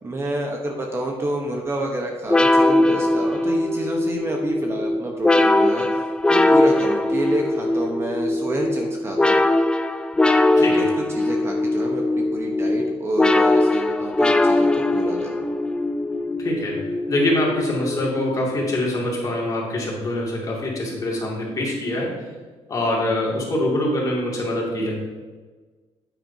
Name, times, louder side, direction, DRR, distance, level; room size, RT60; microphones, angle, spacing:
voice 1, 0.0-6.0 6.3-9.4 10.5-10.8 11.1-15.5, right 1 dB, 25° right, 1 dB, 1.0 m, -29 dB
sound 1, 2.3-18.5, left 2 dB, 10° left, 0.3 m, -21 dB
voice 2, 16.4-16.8 17.1-22.3 22.7-25.1, left 1 dB, 35° left, -3 dB, 2.4 m, -24 dB
9.6 x 9.2 x 2.8 m, 1.3 s
cardioid pair, 160°, 11 cm